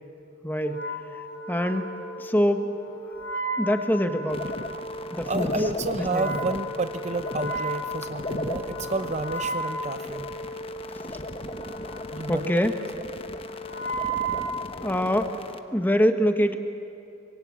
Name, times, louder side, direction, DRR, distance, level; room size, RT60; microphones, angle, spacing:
voice 1, 0.4-0.8 1.5-1.9 2.2-2.7 3.6-4.5 5.1-5.5 6.1-6.3 11.1-11.2 12.3-12.8 14.8-15.3 15.7-16.6, equal, 10° left, 7 dB, 1.2 m, -24 dB
Wind instrument woodwind instrument, 0.6-15.4, right 2 dB, 55° left, 1.7 m, -35 dB
sound 1, 4.3-15.6, left 2 dB, 25° left, 1.1 m, -36 dB
voice 2, 5.2-10.3 12.1-12.9, right 2 dB, 35° right, 10 dB, 0.7 m, -30 dB
25.0 x 22.0 x 8.6 m, 2.7 s
head